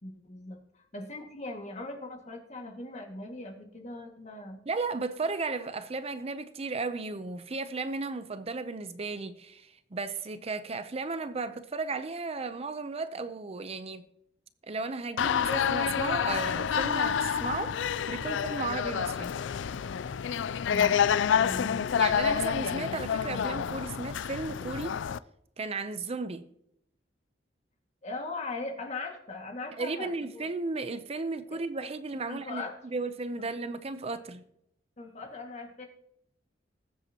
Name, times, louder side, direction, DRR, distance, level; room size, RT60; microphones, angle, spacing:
voice 1, 0.0-4.6 20.7-22.0 28.0-30.5 32.3-32.8 33.4-33.5 35.0-35.9, left 2 dB, 40° left, 2.1 m, -40 dB
voice 2, 4.7-14.0 14.6-17.8 18.1-19.3 21.9-25.0 25.6-26.4 29.8-34.4, right 3 dB, 35° right, 0.6 m, -34 dB
sound 1, 15.2-25.2, left 8 dB, 90° left, 0.4 m, -28 dB
20.5 x 8.1 x 2.9 m
head